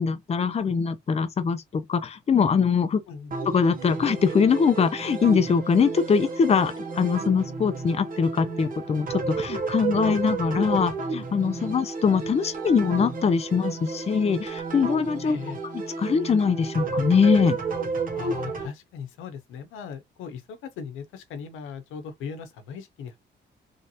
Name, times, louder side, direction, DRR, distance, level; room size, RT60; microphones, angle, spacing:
voice 1, 0.0-3.0 3.5-15.4 15.7-17.6, left 6 dB, 30° left, 0.6 m, -23 dB
sound 1, 3.3-18.7, right 4 dB, 45° right, 1.0 m, -32 dB
voice 2, 15.2-15.6 18.1-23.2, left 6 dB, 90° left, 0.8 m, -38 dB
3.2 x 2.6 x 2.8 m
cardioid pair, 90°, 20 cm